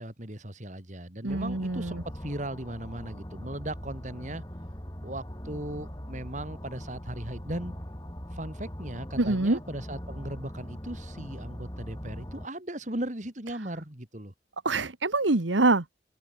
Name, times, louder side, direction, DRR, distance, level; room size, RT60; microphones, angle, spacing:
voice 1, 0.0-4.4 5.0-7.7 8.3-14.3, right 1 dB, 40° right, 3.3 m, -37 dB
voice 2, 1.2-2.0 9.2-9.6 14.6-15.8, right 2 dB, 85° right, 1.5 m, -25 dB
sound 1, 1.3-12.5, equal, 20° left, 4.0 m, -41 dB
open air
head